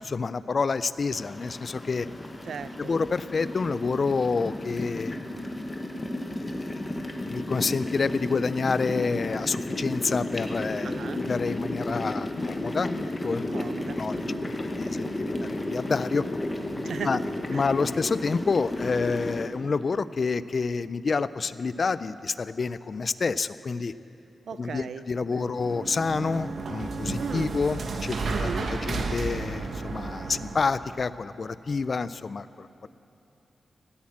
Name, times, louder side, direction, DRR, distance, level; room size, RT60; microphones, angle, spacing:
voice 1, 0.0-2.1 2.8-5.7 6.3-13.5 13.9-14.1 14.6-16.2 17.0-17.2 17.5-23.9 24.6-32.9, left 4 dB, 40° left, 15 dB, 0.3 m, -28 dB
sound 1, 1.1-19.5, left 1 dB, 20° left, 1.0 m, -33 dB
voice 2, 2.4-2.9 10.8-11.2 13.5-14.4 16.8-17.2 17.5-17.7 24.5-25.0 25.4-25.5 27.2-27.6 28.3-28.7, right 6 dB, 75° right, 14 dB, 0.4 m, -37 dB
sound 2, 10.3-11.1 11.3-11.4 11.8-12.1 12.3-12.6 12.8-13.5 13.9-14.1 14.4-14.6 14.9-15.6 15.8-17.6 17.8-18.0, left 5 dB, 75° left, 0.9 m, -43 dB
sound 3, 25.4-30.9, right 3 dB, 60° right, 1.0 m, -32 dB
16.5 x 8.6 x 8.6 m, 3.0 s
wide cardioid pair, 165°, 0 cm